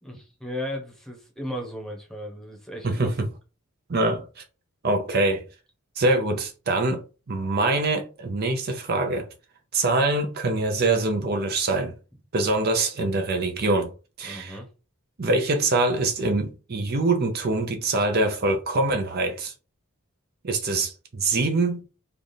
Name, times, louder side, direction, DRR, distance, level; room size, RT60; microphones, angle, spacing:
voice 1, 0.0-3.1 14.2-14.7, equal, ahead, 0.9 m, -35 dB
voice 2, 2.8-3.3 3.9-4.4 4.8-5.4 6.0-7.0 7.3-9.3 9.7-11.9 12.3-13.9 14.2-14.6 15.2-19.5 20.4-21.9, right 2 dB, 45° right, 0.6 m, -24 dB
3.4 x 2.4 x 4.0 m
head